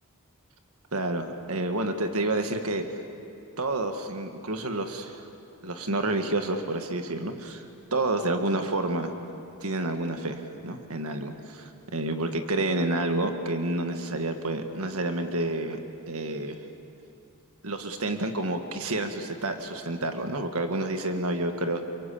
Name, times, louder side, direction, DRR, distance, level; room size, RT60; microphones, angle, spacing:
voice 1, 0.9-2.9 3.6-5.2 5.6-7.6 7.9-9.1 9.6-15.8 16.1-16.6 17.6-21.8, right 2 dB, 70° right, 6 dB, 1.8 m, -29 dB
28.5 x 24.0 x 8.6 m, 2.6 s
head